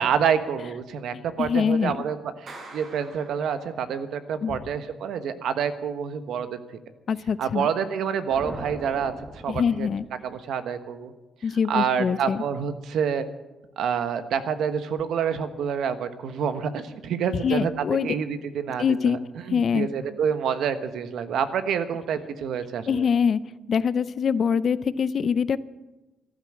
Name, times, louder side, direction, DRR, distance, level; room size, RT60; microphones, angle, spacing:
voice 1, 0.0-2.2 2.4-6.5 7.4-9.1 9.4-9.9 10.2-11.1 11.7-13.3 13.8-19.2 19.5-23.0, right 7 dB, 75° right, 10 dB, 1.2 m, -27 dB
voice 2, 1.1-2.1 4.4-4.6 7.1-7.7 9.5-10.0 11.4-12.4 17.3-18.1 18.8-19.2 19.5-19.9 22.9-23.4 23.7-25.6, left 6 dB, 50° left, 16 dB, 0.6 m, -24 dB
Clapping, 2.5-4.1, right 2 dB, 55° right, 6.3 m, -45 dB
sound 1, 8.3-10.5, equal, 10° right, 1.8 m, -40 dB
14.0 x 12.0 x 7.6 m, 1.1 s
cardioid pair, 90°, 0 cm